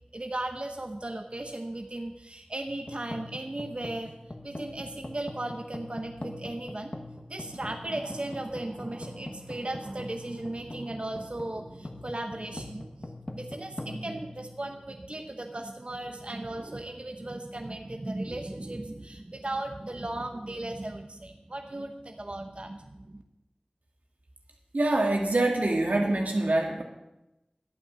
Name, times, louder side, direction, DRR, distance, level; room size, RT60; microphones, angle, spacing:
voice 1, 0.1-4.1 4.4-6.9 7.3-23.2, right 1 dB, 50° right, 4 dB, 1.0 m, -36 dB
sound 1, 2.7-15.1, left 1 dB, 40° left, 1.3 m, -43 dB
voice 2, 24.7-26.8, right 2 dB, 90° right, 1 dB, 1.9 m, -25 dB
11.5 x 8.7 x 6.1 m, 0.93 s
wide cardioid pair, 45°, 3 cm